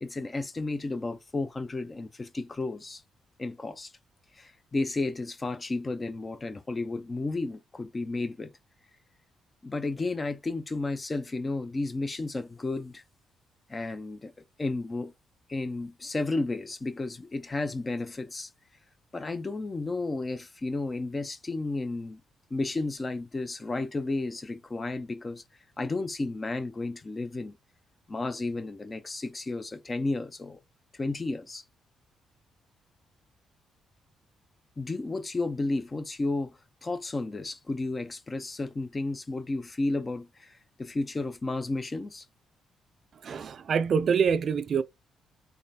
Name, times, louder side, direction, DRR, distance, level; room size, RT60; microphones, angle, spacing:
voice 1, 0.0-3.0 3.4-3.9 4.4-8.5 9.6-13.0 13.7-14.3 14.6-15.1 15.5-18.5 19.1-22.2 22.5-25.4 25.8-27.6 28.1-30.6 31.0-31.6 34.8-42.2, left 2 dB, 25° left, 0.5 m, -32 dB
voice 2, 43.2-44.8, right 6 dB, 55° right, 0.4 m, -25 dB
3.5 x 3.2 x 2.7 m
cardioid pair, 90°, 0 cm